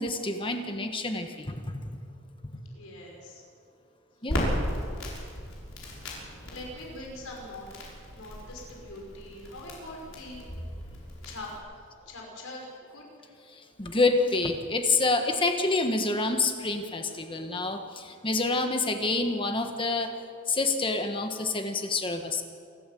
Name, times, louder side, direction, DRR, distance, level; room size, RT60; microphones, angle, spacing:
voice 1, 0.0-2.0 4.2-4.5 13.5-20.1 20.5-22.4, left 3 dB, 25° left, 5 dB, 1.4 m, -28 dB
voice 2, 2.8-3.4 6.5-7.7 8.1-10.4 11.2-11.5 12.1-12.6 12.9-13.0, left 1 dB, 80° left, -1 dB, 5.7 m, -42 dB
Crackle, 4.3-11.6, equal, 65° left, 6.3 m, -36 dB
27.5 x 13.0 x 7.8 m, 2.4 s
head